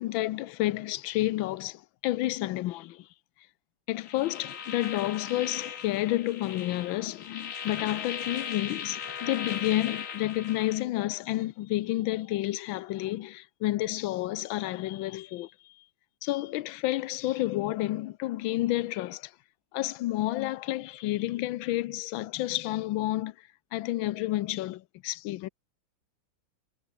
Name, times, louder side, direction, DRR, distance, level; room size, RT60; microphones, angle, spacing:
voice 1, 0.0-3.1 3.9-15.8 16.2-19.3 19.7-25.5, left 16 dB, 85° left, 1.4 m, -30 dB
sound 1, 4.0-10.8, left 7 dB, 45° left, 1.5 m, -38 dB
omnidirectional pair, 2.1 m